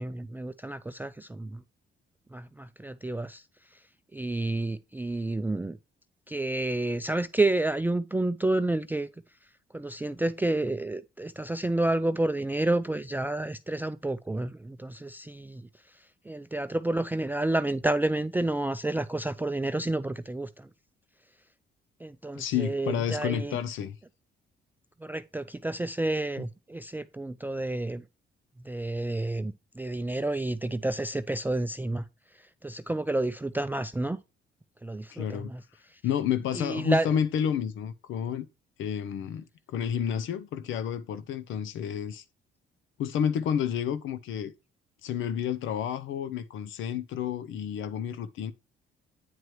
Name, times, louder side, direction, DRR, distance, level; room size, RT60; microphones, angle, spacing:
voice 1, 0.0-1.6 2.3-3.4 4.1-5.8 6.3-9.1 9.7-15.7 16.3-20.7 22.0-23.6 25.0-28.0 28.6-32.0 32.6-34.2 34.8-35.6 35.9-36.0 36.5-37.1, right 2 dB, 10° right, 0.4 m, -30 dB
voice 2, 22.3-24.0 35.1-35.5 36.0-38.5 38.8-42.2 43.0-44.5 45.0-48.5, left 8 dB, 80° left, 0.6 m, -30 dB
9.3 x 4.7 x 3.0 m
cardioid pair, 90°, 20 cm